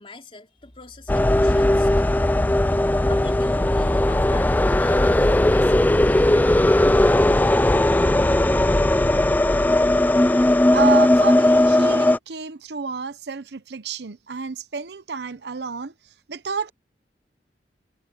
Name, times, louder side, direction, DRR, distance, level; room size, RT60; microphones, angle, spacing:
voice 1, 0.0-2.6 2.9-6.7, left 2 dB, 30° left, 4.2 m, -43 dB
sound 1, 1.1-12.2, left 1 dB, 10° left, 0.3 m, -18 dB
voice 2, 10.5-16.7, right 6 dB, 70° right, 0.8 m, -30 dB
head